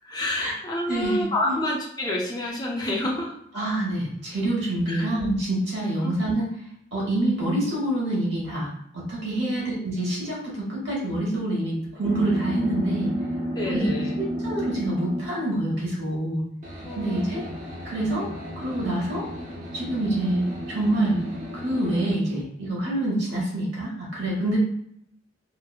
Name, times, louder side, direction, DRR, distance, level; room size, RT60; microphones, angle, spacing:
voice 1, 0.0-3.3 4.9-5.1 6.0-6.1 13.6-14.1 16.8-17.4, left 1 dB, 20° left, -2 dB, 0.4 m, -28 dB
voice 2, 0.9-1.6 3.5-6.5 6.9-8.7 9.1-13.1 13.7-13.9 14.2-16.4 16.9-17.4 17.8-18.3 18.6-19.2 19.7-21.2 21.5-24.6, right 1 dB, 65° right, -5 dB, 1.1 m, -26 dB
sound 1, 12.0-15.6 16.6-22.1, equal, 40° right, 0.6 m, -33 dB
2.9 x 2.0 x 2.3 m, 0.70 s
head